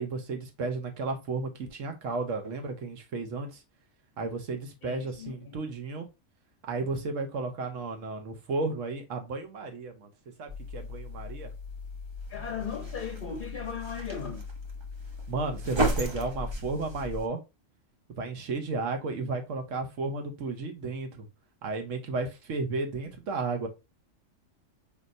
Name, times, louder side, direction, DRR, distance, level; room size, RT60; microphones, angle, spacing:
voice 1, 0.0-3.6 4.2-6.1 6.7-10.1 10.4-11.5 15.3-17.4 18.2-21.3 21.6-23.7, right 3 dB, 70° right, 1.3 m, -33 dB
voice 2, 4.8-5.6 12.3-14.4, left 6 dB, 50° left, 0.7 m, -37 dB
sound 1, 10.5-17.3, equal, 40° right, 0.4 m, -35 dB
5.3 x 2.9 x 2.5 m
omnidirectional pair, 1.4 m